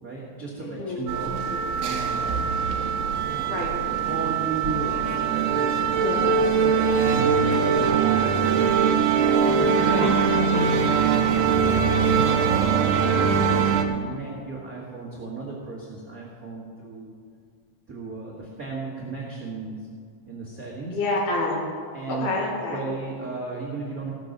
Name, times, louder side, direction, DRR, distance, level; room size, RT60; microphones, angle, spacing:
voice 1, 0.0-1.4 1.7-2.5 3.3-3.7 4.0-10.9 11.3-12.7 13.0-17.1 17.9-19.8 20.3-21.0 21.9-22.3 22.7-24.1, right 3 dB, 55° right, -6 dB, 0.9 m, -35 dB
voice 2, 0.6-1.1 1.5-1.6 3.5-3.7 5.9-6.2 9.9-10.1 12.1-12.3 20.9-21.6 22.1-22.8, left 2 dB, 70° left, -2 dB, 3.8 m, -28 dB
sound 1, 1.1-13.8, right 6 dB, 80° right, 1.8 m, -22 dB
16.5 x 6.7 x 6.6 m, 2.1 s
omnidirectional pair, 4.6 m